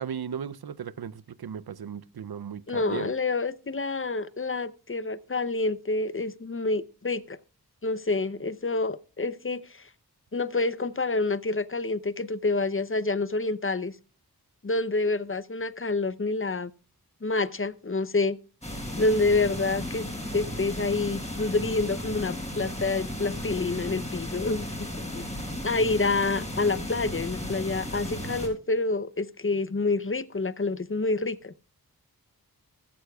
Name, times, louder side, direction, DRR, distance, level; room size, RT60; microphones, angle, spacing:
voice 1, 0.0-3.1, right 8 dB, 85° right, 0.6 m, -36 dB
voice 2, 2.7-7.4 7.8-9.9 10.3-13.9 14.6-16.7 17.2-18.4 19.0-20.1 20.3-25.2 25.6-31.5, left 3 dB, 35° left, 0.7 m, -28 dB
sound 1, 18.6-28.5, left 1 dB, 15° left, 5.1 m, -35 dB
14.5 x 12.5 x 2.3 m
wide cardioid pair, 55°, 37 cm